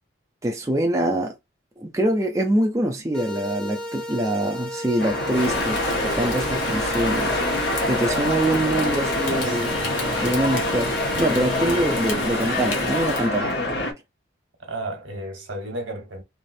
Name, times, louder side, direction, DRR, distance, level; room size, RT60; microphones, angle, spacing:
voice 1, 0.4-1.4 1.8-7.4 7.9-9.8 10.2-13.5, right 1 dB, 15° right, 0.4 m, -24 dB
sound 1, 3.1-12.1, equal, 5° left, 0.8 m, -33 dB
sound 2, 5.0-13.9, left 1 dB, 55° left, 0.9 m, -26 dB
Rain, 5.3-13.3, left 2 dB, 75° left, 1.2 m, -31 dB
voice 2, 8.6-9.6 14.6-16.2, right 1 dB, 80° right, 1.2 m, -34 dB
3.3 x 2.5 x 2.6 m
head